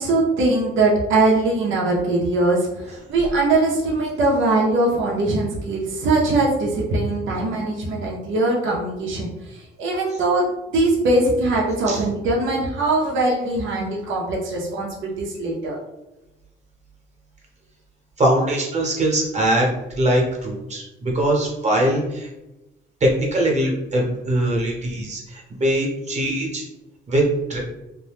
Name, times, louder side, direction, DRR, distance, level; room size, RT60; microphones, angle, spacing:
voice 1, 0.0-10.4 10.7-15.8, right 2 dB, 80° right, -2 dB, 0.7 m, -21 dB
voice 2, 18.2-19.7 20.0-22.3 23.0-26.6 27.1-27.2 27.5-27.6, right 1 dB, 35° right, -1 dB, 1.0 m, -21 dB
2.7 x 2.2 x 3.4 m, 0.97 s
cardioid pair, 90°, 20 cm